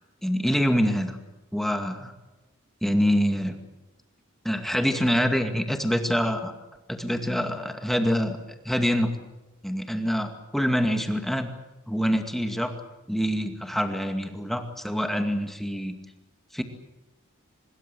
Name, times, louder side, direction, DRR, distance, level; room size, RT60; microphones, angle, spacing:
voice 1, 0.2-1.2 1.5-2.1 2.8-3.6 4.4-6.5 6.9-8.4 8.7-9.1 9.6-11.5 11.9-12.7 13.1-16.0 16.5-16.6, equal, ahead, 5 dB, 2.2 m, -25 dB
24.0 x 21.5 x 7.7 m, 1.1 s
head